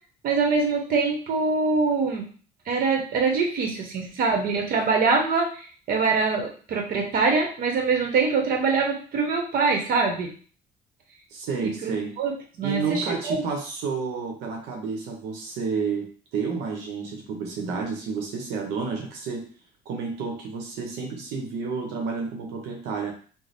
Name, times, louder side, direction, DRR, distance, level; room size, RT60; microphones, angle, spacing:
voice 1, 0.2-2.3 2.7-10.3 11.6-12.3 12.6-13.4, right 4 dB, 60° right, 2 dB, 0.9 m, -24 dB
voice 2, 11.3-12.1 12.6-16.1 16.3-19.5 19.9-23.1, right 5 dB, 85° right, 1 dB, 0.8 m, -30 dB
3.2 x 2.0 x 4.0 m, 0.41 s
cardioid pair, 110°, 17 cm